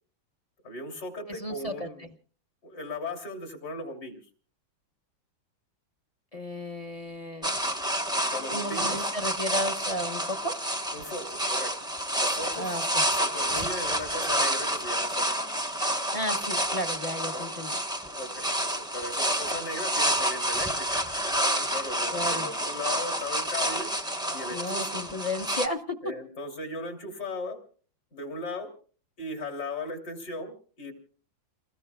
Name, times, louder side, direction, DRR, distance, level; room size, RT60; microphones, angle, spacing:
voice 1, 0.6-2.0 2.6-4.2 8.3-9.1 10.9-11.7 12.2-12.8 13.2-15.2 17.3-17.5 18.0-21.0 21.5-23.9 24.3-25.0 26.0-27.6 28.1-28.7 29.2-30.9, left 2 dB, 55° left, 3 dB, 3.6 m, -37 dB
voice 2, 1.3-2.1 6.3-7.6 8.5-10.6 12.6-13.0 16.1-17.8 22.1-22.5 24.5-26.0, left 1 dB, 25° left, 5 dB, 0.9 m, -33 dB
sound 1, 7.4-25.7, right 1 dB, 5° right, 0.7 m, -29 dB
29.5 x 20.0 x 2.3 m, 0.42 s
omnidirectional pair, 2.1 m